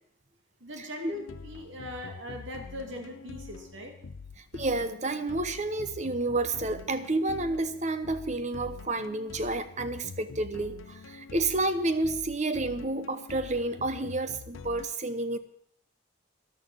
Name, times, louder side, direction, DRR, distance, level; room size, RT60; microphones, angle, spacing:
voice 1, 0.6-3.9, left 1 dB, 70° right, 2.2 m, -40 dB
sound 1, 1.1-14.9, left 4 dB, 80° left, 0.5 m, -46 dB
voice 2, 4.5-15.4, right 2 dB, 35° right, 0.9 m, -30 dB
13.0 x 12.0 x 6.0 m
head